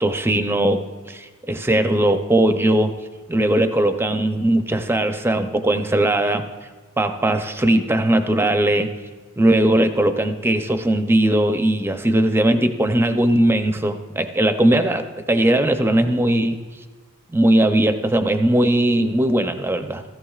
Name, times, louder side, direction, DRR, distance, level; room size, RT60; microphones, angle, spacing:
voice 1, 0.0-3.0 3.3-6.5 7.0-8.9 9.4-16.6 17.3-20.0, right 1 dB, 10° right, 8 dB, 0.5 m, -19 dB
16.0 x 14.5 x 2.4 m, 1.3 s
head